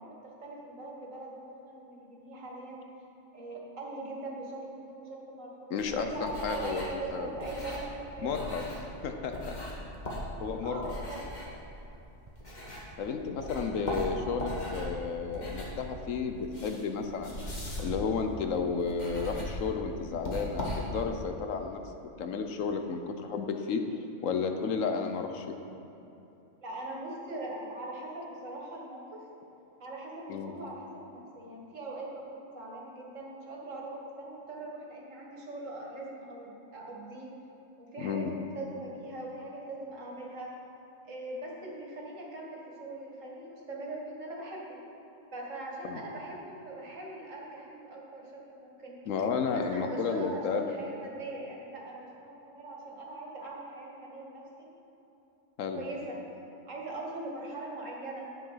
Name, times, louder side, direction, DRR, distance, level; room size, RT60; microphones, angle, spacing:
voice 1, 0.0-2.8 3.3-9.3 10.6-11.2 26.6-29.3 29.8-37.3 37.8-40.5 41.0-44.8 45.3-49.0 49.5-54.7 55.7-56.2 56.7-58.3, right 2 dB, 75° right, -2 dB, 2.2 m, -41 dB
voice 2, 5.7-6.8 7.1-7.3 8.2-8.6 9.0-9.6 10.4-10.8 13.0-17.4 17.8-21.8 22.2-23.8 24.2-25.5 30.3-30.5 38.0-38.3 45.8-46.0 49.1-50.7 55.6-55.8, left 5 dB, 80° left, 6 dB, 1.2 m, -32 dB
sound 1, 5.8-13.1 13.4-21.2, left 1 dB, 35° left, 1.8 m, -39 dB
sound 2, 7.3-7.4 8.0-8.4 8.9-9.0 9.3-9.4 9.9-10.0 10.3-10.4 10.9-11.4 11.9-12.3 12.9-13.4 13.9-14.3 14.9-15.0 15.3-15.4 15.9-16.3, right 3 dB, 30° right, 0.8 m, -55 dB
10.5 x 7.7 x 5.7 m, 2.9 s
omnidirectional pair, 1.3 m